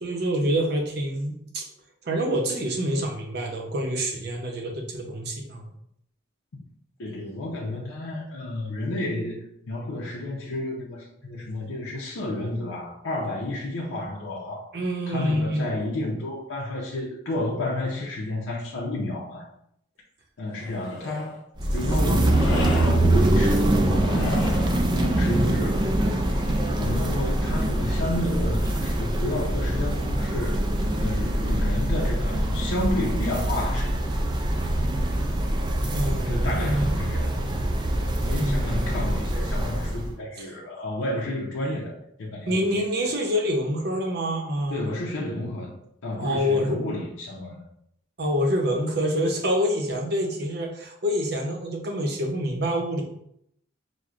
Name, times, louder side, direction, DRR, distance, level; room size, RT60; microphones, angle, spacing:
voice 1, 0.0-1.6 2.0-5.7 14.7-15.7 35.9-36.9 38.3-38.9 40.4-40.5 42.5-44.9 46.2-46.8 48.2-53.0, equal, 55° right, 1 dB, 0.7 m, -26 dB
voice 2, 7.0-14.7 15.1-19.4 20.4-21.4 21.7-26.1 26.8-30.6 31.0-34.1 36.1-37.4 38.2-42.8 44.7-45.7 46.0-47.6, left 1 dB, 80° left, -3 dB, 0.6 m, -31 dB
sound 1, 20.5-21.4 22.3-23.0 23.9-24.8 26.1-26.9, left 4 dB, 65° left, 0.9 m, -36 dB
sound 2, 21.6-40.1, right 1 dB, 20° right, 0.3 m, -24 dB
5.9 x 2.1 x 2.4 m, 0.74 s
head